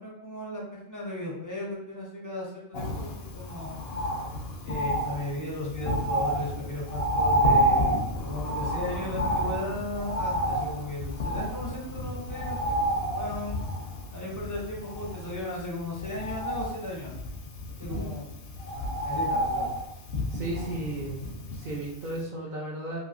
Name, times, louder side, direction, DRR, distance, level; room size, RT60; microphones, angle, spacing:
voice 1, 0.0-3.8 4.6-12.8 13.1-13.6 14.1-17.1 17.8-18.3 18.7-19.7, left 1 dB, 25° left, -4 dB, 0.4 m, -36 dB
Bird, 2.7-21.9 22.2-22.3, equal, 60° left, 0.7 m, -30 dB
voice 2, 20.3-21.2 21.5-23.0, right 2 dB, 55° right, -3 dB, 0.5 m, -34 dB
2.9 x 2.6 x 2.5 m, 0.84 s
omnidirectional pair, 1.3 m